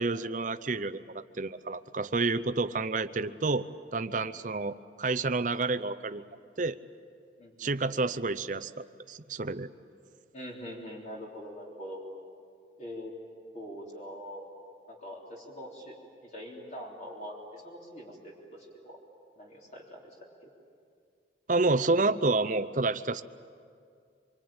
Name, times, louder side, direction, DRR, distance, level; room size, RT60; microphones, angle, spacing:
voice 1, 0.0-3.7 3.9-6.3 6.6-6.8 7.6-9.7 21.5-23.2, right 3 dB, 45° right, 12 dB, 0.7 m, -29 dB
voice 2, 7.4-7.9 10.3-12.0 12.8-13.1 13.5-14.5 14.9-15.9 16.2-19.0 19.4-20.1 20.4-20.5, equal, 40° left, -2 dB, 3.6 m, -43 dB
25.5 x 24.5 x 8.9 m, 2.3 s
head